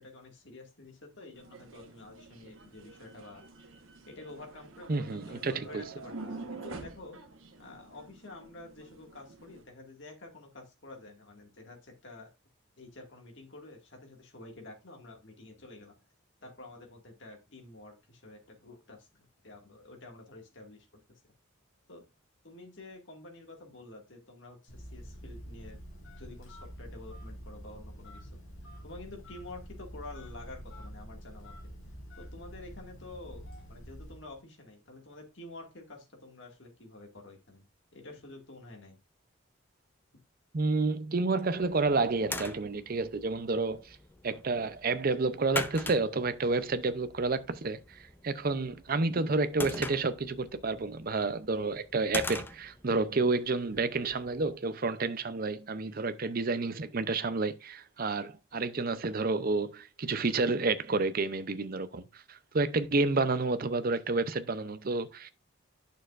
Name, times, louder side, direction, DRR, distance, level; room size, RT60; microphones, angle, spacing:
voice 1, 0.0-3.4 4.1-7.2 7.6-12.3 12.8-15.9 16.4-21.0 21.9-22.0 22.4-25.8 26.2-28.4 28.8-31.7 32.2-33.4 33.7-37.7 37.9-39.0, left 2 dB, 60° left, 2.1 m, -49 dB
sound 1, 1.3-9.6, right 3 dB, 75° right, 1.3 m, -47 dB
voice 2, 4.9-5.8 40.5-44.0 44.2-65.3, right 3 dB, 45° right, 0.6 m, -30 dB
Telephone, 24.7-34.4, equal, 85° left, 2.7 m, -47 dB
sound 2, 41.5-54.6, left 2 dB, 10° left, 0.5 m, -43 dB
8.9 x 6.6 x 2.5 m
head